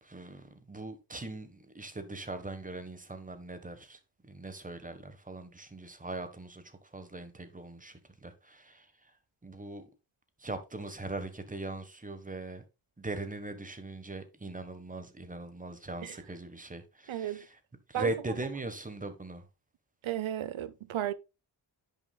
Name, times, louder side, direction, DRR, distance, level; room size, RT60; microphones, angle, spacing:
voice 1, 0.0-9.1 9.4-9.8 10.4-12.6 13.0-17.6 17.9-19.4, right 2 dB, 15° right, 1.3 m, -40 dB
voice 2, 17.1-17.4 17.9-18.1 20.0-21.1, right 12 dB, 75° right, 0.8 m, -34 dB
10.0 x 6.3 x 2.3 m
wide cardioid pair, 110°, 48 cm